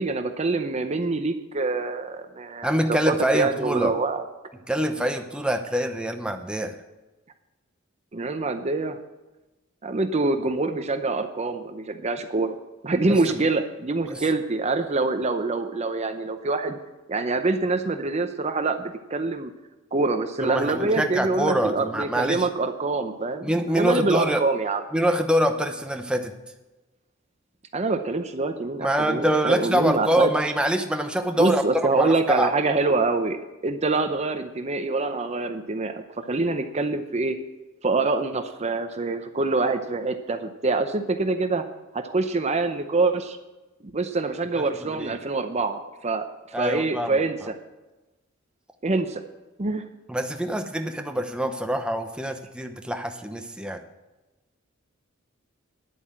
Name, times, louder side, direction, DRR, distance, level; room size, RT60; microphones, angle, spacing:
voice 1, 0.0-4.2 8.1-9.0 9.8-12.5 12.8-16.8 17.1-19.5 19.9-24.8 27.7-30.3 31.4-33.4 33.6-37.4 37.8-41.6 41.9-43.4 43.9-46.3 46.6-47.6 48.8-49.2 49.6-49.9, right 3 dB, 35° right, 8 dB, 0.7 m, -25 dB
voice 2, 2.6-3.9 4.7-6.8 13.1-13.4 14.1-14.2 20.4-22.5 23.4-24.4 24.9-26.3 28.8-32.5 44.5-45.1 46.5-47.2 50.1-53.8, right 1 dB, 5° right, 5 dB, 0.8 m, -25 dB
10.0 x 8.4 x 7.5 m, 1.1 s
head